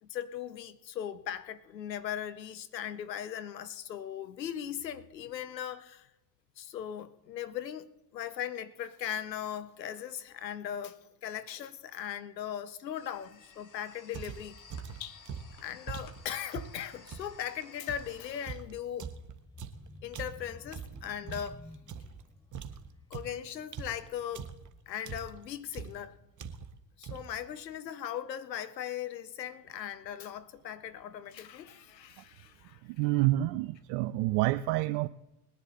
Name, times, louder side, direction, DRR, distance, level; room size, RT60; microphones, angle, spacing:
voice 1, 0.0-6.1 6.6-14.6 15.0-15.2 15.6-19.1 20.0-21.6 23.1-24.5 24.9-26.2 27.0-32.8, left 10 dB, 85° left, 0.9 m, -39 dB
sound 1, 12.9-18.5, left 4 dB, 40° left, 3.1 m, -56 dB
sound 2, 14.1-17.4 17.9-22.2 22.5-24.7 25.0-25.5 25.7-26.1 26.4-26.8 27.0-27.4, right 6 dB, 40° right, 1.4 m, -43 dB
sound 3, 19.4-25.1 25.5-25.8 26.1-26.2, left 3 dB, 10° left, 0.7 m, -54 dB
voice 2, 32.9-35.1, right 17 dB, 55° right, 0.6 m, -28 dB
20.5 x 10.5 x 4.2 m
hypercardioid pair, 60°, 49 cm